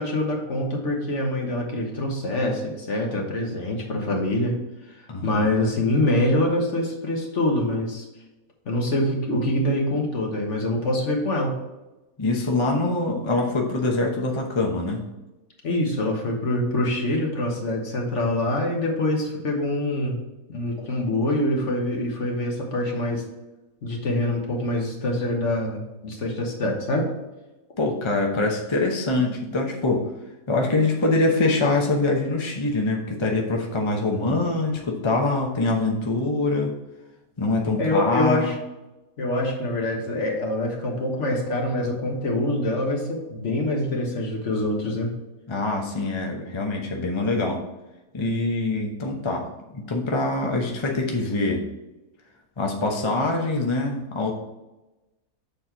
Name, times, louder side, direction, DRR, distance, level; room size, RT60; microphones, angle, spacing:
voice 1, 0.0-4.5 4.9-8.0 8.6-11.5 15.6-20.2 20.5-23.2 23.8-27.1 37.8-38.5 39.2-45.1, left 1 dB, 50° left, 0 dB, 1.6 m, -25 dB
voice 2, 5.1-5.5 12.2-15.0 27.8-30.0 30.5-36.7 37.4-38.5 45.5-47.6 48.1-49.5 49.7-51.6 52.6-54.3, left 2 dB, 25° left, 1 dB, 0.7 m, -24 dB
7.0 x 4.3 x 4.5 m, 1.0 s
omnidirectional pair, 1.7 m